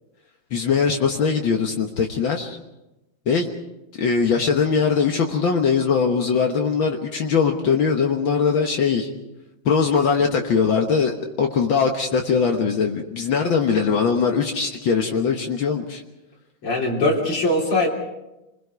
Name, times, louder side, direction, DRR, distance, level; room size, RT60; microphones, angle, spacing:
voice 1, 0.5-2.6 3.3-3.5 4.0-9.1 9.7-16.0, left 5 dB, 65° left, 2 dB, 2.0 m, -21 dB
voice 2, 16.6-17.9, left 2 dB, 80° left, -4 dB, 4.1 m, -21 dB
29.0 x 21.0 x 4.7 m, 0.97 s
omnidirectional pair, 2.3 m